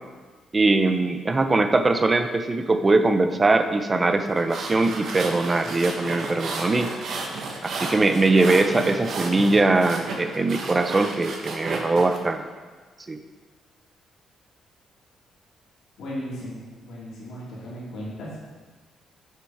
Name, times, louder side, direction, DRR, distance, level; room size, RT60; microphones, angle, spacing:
voice 1, 0.5-6.9 7.6-12.4 13.1-13.2, right 2 dB, 25° right, 8 dB, 0.6 m, -21 dB
sound 1, 4.3-12.2, right 3 dB, 65° right, 1.1 m, -33 dB
voice 2, 16.0-18.4, equal, 70° left, -8 dB, 2.5 m, -36 dB
6.7 x 6.1 x 4.7 m, 1.4 s
cardioid pair, 90°, 0 cm